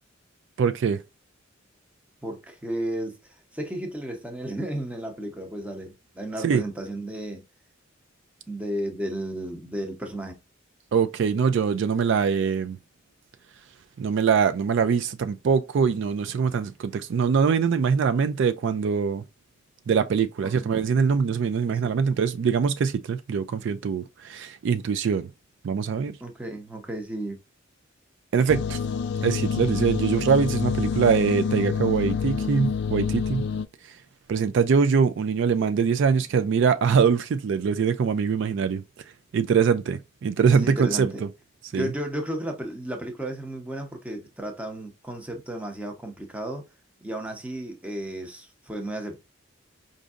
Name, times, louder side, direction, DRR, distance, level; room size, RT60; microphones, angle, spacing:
voice 1, 0.6-1.0 6.4-6.6 10.9-12.8 14.0-19.2 19.9-25.3 25.6-26.2 28.3-28.8 29.2-33.4 34.3-38.8 39.3-41.1 41.7-41.9, right 6 dB, 60° right, 0.3 m, -23 dB
voice 2, 2.2-3.2 3.5-7.4 8.5-10.3 21.8-21.9 26.2-27.4 40.5-41.2 41.7-46.6 47.0-49.2, right 1 dB, 5° right, 0.7 m, -33 dB
sound 1, 28.5-33.7, left 6 dB, 55° left, 0.3 m, -27 dB
5.0 x 2.6 x 2.4 m
head